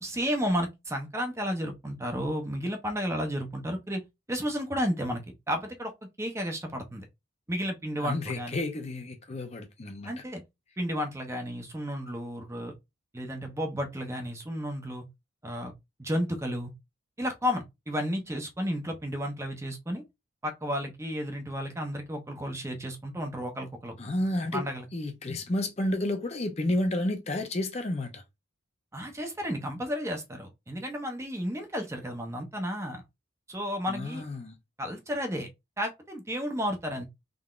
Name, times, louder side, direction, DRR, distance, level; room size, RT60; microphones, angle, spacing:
voice 1, 0.0-4.0 4.3-5.9 6.2-7.0 7.5-8.7 10.1-10.4 10.8-12.7 13.1-15.0 15.4-15.7 16.0-16.7 17.2-20.0 20.4-23.9 24.5-24.9 28.9-33.0 33.5-34.2 34.8-35.5 35.8-37.0, equal, 15° right, 0.7 m, -32 dB
voice 2, 8.0-10.1 24.0-24.7 24.9-28.2 33.9-34.5, left 1 dB, 30° left, 0.6 m, -31 dB
3.7 x 3.4 x 2.4 m
head